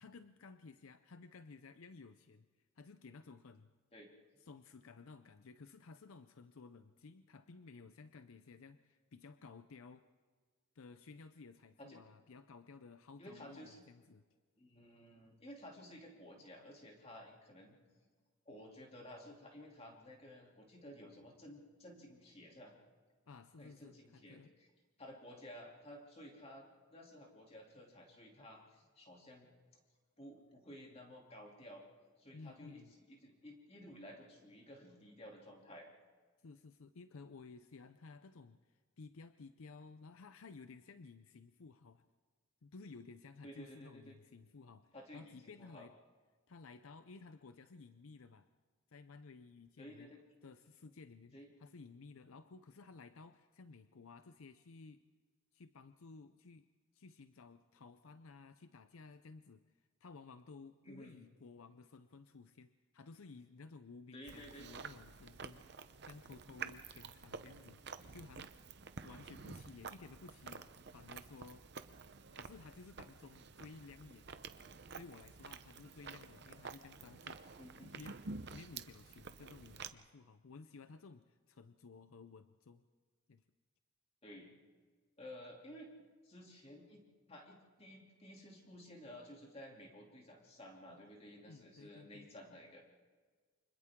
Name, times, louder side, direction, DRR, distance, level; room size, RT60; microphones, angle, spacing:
voice 1, 0.0-2.5 2.8-3.7 4.4-10.0 10.7-14.3 23.3-24.5 32.3-32.9 36.4-42.0 42.6-45.9 46.5-48.5 48.9-50.1 50.4-55.0 55.5-56.7 56.9-67.8 68.1-68.5 69.0-71.6 72.3-74.4 75.0-77.4 77.8-82.8 83.3-83.4 91.4-92.3, left 4 dB, 80° left, 10 dB, 0.6 m, -55 dB
voice 2, 13.2-13.8 14.6-17.8 18.4-22.7 23.6-24.7 25.0-26.6 26.9-29.5 30.2-31.8 32.2-35.9 43.4-44.2 44.9-45.9 49.8-50.2 51.3-51.5 60.8-61.2 64.1-64.7 77.6-78.0 84.2-84.5 85.2-85.9 86.2-87.0 87.3-92.8, equal, 30° left, -1 dB, 2.9 m, -54 dB
Chewing mastication, 64.3-79.9, right 5 dB, 50° right, 0.8 m, -50 dB
29.0 x 25.5 x 3.7 m, 1.5 s
head